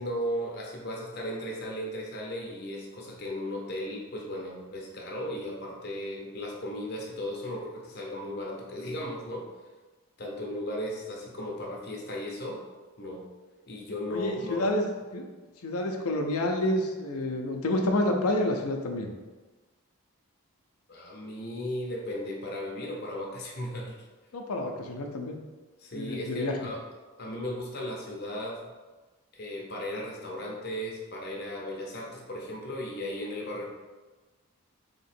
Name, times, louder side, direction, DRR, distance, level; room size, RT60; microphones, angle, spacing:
voice 1, 0.0-9.5 10.2-12.6 13.0-13.3 13.7-14.7 20.9-24.0 25.8-26.8 27.2-28.7 29.3-33.7, left 1 dB, 45° left, -1 dB, 0.6 m, -36 dB
voice 2, 14.1-14.8 15.1-15.3 15.6-19.1 24.3-25.4 25.9-26.5, left 1 dB, 85° left, 3 dB, 0.5 m, -28 dB
3.7 x 2.9 x 4.2 m, 1.3 s
head